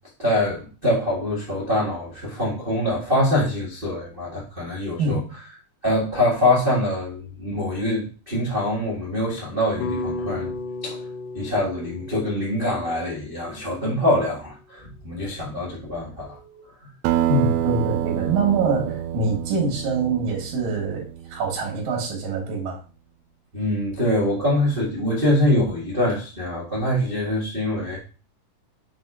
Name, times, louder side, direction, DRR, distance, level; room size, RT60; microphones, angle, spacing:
voice 1, 0.2-5.2 5.8-10.5 10.8-11.0 11.3-16.9 23.5-28.0, left 1 dB, 30° right, -5 dB, 1.0 m, -24 dB
voice 2, 5.0-5.3 17.3-22.8, right 3 dB, 65° right, 0 dB, 2.7 m, -24 dB
sound 1, 9.8-14.1, left 3 dB, 90° left, 2.3 m, -34 dB
Acoustic guitar, 17.0-21.9, right 12 dB, 85° right, 1.6 m, -27 dB
6.1 x 3.5 x 4.7 m, 0.35 s
omnidirectional pair, 3.8 m